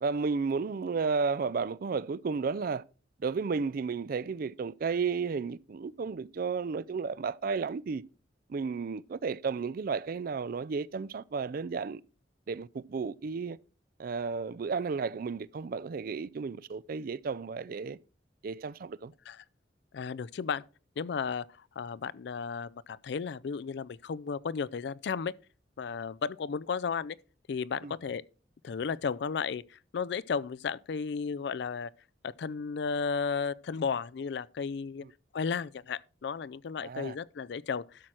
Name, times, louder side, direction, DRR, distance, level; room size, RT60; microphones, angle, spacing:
voice 1, 0.0-2.8 3.2-8.0 8.5-12.0 12.5-13.6 14.0-18.0 18.4-19.1 27.8-27.9 35.0-35.1 36.8-37.2, right 5 dB, 50° right, 0.4 m, -33 dB
voice 2, 19.9-20.6 21.0-21.5 21.8-25.3 25.8-27.2 27.5-28.2 28.6-31.9 32.2-35.0 35.3-38.1, left 5 dB, 65° left, 0.4 m, -34 dB
12.0 x 6.2 x 4.3 m
head